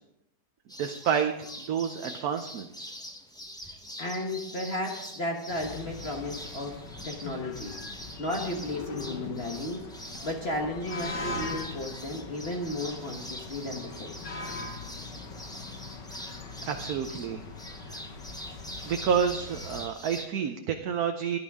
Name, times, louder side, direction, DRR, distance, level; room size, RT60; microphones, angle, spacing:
sound 1, 0.7-20.3, equal, 5° left, 0.7 m, -44 dB
voice 1, 0.8-1.3 1.7-2.9 16.7-17.4 17.7-18.0 18.8-21.4, right 7 dB, 65° right, 6 dB, 1.2 m, -29 dB
voice 2, 4.0-6.8 7.0-7.7 8.2-9.9 10.2-14.2, left 1 dB, 40° left, 0 dB, 1.5 m, -34 dB
sound 2, 5.5-19.9, left 3 dB, 90° left, 2.1 m, -41 dB
16.5 x 11.0 x 3.6 m, 0.84 s
omnidirectional pair, 1.9 m